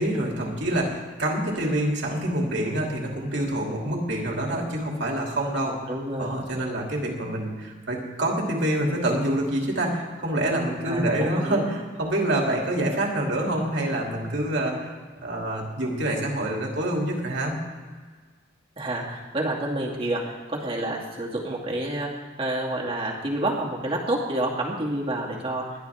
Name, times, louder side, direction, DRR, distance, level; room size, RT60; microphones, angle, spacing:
voice 1, 0.0-5.7 6.2-14.9 15.2-17.6, right 1 dB, 65° right, -1 dB, 2.9 m, -26 dB
voice 2, 5.9-6.3 10.9-11.7 18.8-22.1 22.4-25.7, right 1 dB, 30° right, -3 dB, 2.4 m, -28 dB
21.0 x 11.0 x 3.6 m, 1.5 s
head